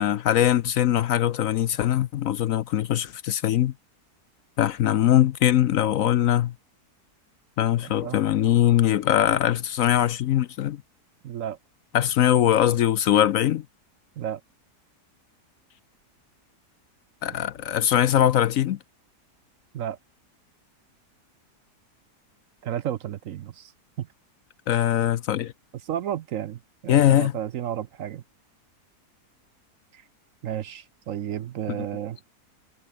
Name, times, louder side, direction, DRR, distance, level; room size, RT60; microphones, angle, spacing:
voice 1, 0.0-3.7 4.6-6.5 7.6-10.8 11.9-13.6 17.2-18.8 24.7-25.5 26.9-27.3, left 11 dB, 65° left, 0.9 m, -21 dB
voice 2, 7.8-8.2 11.2-11.6 14.2-14.4 19.7-20.0 22.6-23.7 24.0-24.1 25.8-28.2 29.9-30.0 30.4-32.2, right 10 dB, 65° right, 0.9 m, -32 dB
omnidirectional pair, 1.7 m